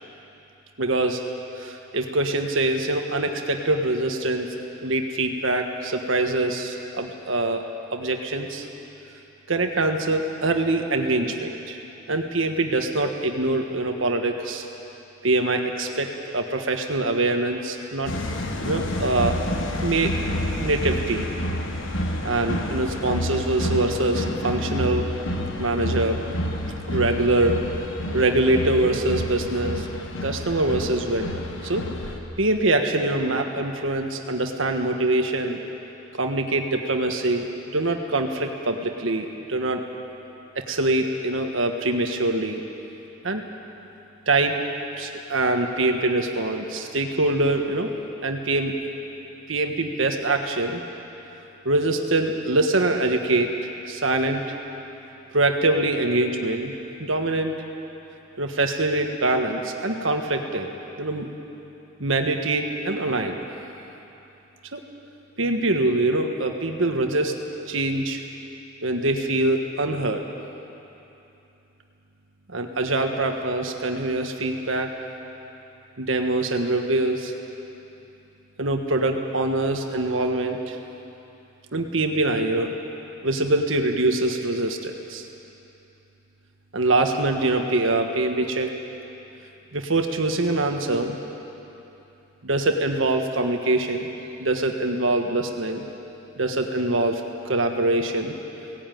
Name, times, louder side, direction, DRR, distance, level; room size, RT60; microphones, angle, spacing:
voice 1, 0.8-1.2 1.6-4.5 4.8-7.6 7.9-8.7 9.5-11.8 12.1-14.6 15.2-16.1 16.3-18.1 18.6-19.3 19.8-20.1 20.6-21.3 22.2-25.1 25.6-26.2 26.9-27.6 28.1-29.9 30.2-31.8 32.4-35.6 36.2-37.5 37.7-39.8 40.7-42.6 43.2-43.4 44.3-44.6 45.0-47.9 48.2-48.7 49.5-50.8 51.6-53.5 53.9-54.4 55.3-56.7 57.0-57.5 58.4-61.3 62.0-63.4 64.7-64.8 65.4-67.3 67.7-68.2 68.8-70.2 72.5-74.9 76.0-77.3 78.6-80.8 81.7-82.7 83.2-85.3 86.7-88.7 89.7-91.2 92.4-94.1 94.4-95.8 96.4-97.2 97.5-98.4, right 2 dB, 75° right, 4 dB, 1.5 m, -24 dB
sound 1, 18.1-32.2, left 1 dB, 70° left, 1.6 m, -29 dB
17.5 x 16.5 x 9.3 m, 3.0 s
head